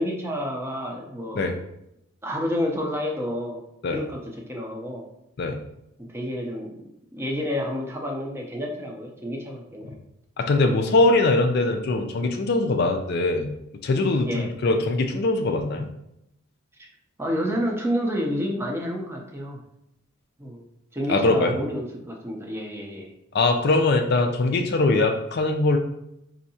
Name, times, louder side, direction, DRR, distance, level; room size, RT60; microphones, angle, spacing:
voice 1, 0.0-1.6 2.2-3.6 3.9-5.1 6.0-6.8 7.1-10.0 14.2-14.5 16.8-16.9 17.2-19.6 20.4-20.6 20.9-23.1, equal, 10° right, 0 dB, 0.5 m, -29 dB
voice 2, 10.4-13.5 13.8-15.9 21.1-21.6 23.3-25.8, left 2 dB, 50° left, 5 dB, 0.4 m, -22 dB
4.3 x 2.7 x 2.7 m, 0.80 s
head